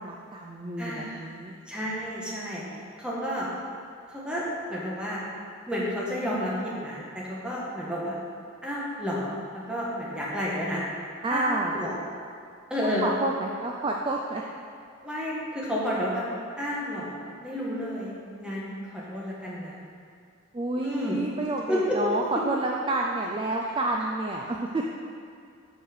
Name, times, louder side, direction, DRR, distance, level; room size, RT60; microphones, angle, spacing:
voice 1, 0.0-1.6 11.2-11.8 13.0-14.4 20.5-24.9, right 2 dB, 25° right, -1 dB, 0.4 m, -29 dB
voice 2, 0.8-1.2 1.7-2.6 3.0-3.5 4.1-4.4 4.7-5.2 5.7-8.2 8.6-10.8 11.3-12.0 12.7-13.1 15.0-16.2 16.6-19.8 20.8-21.3 21.7-22.0, equal, 5° right, -6 dB, 1.4 m, -31 dB
5.6 x 5.4 x 6.6 m, 2.3 s
head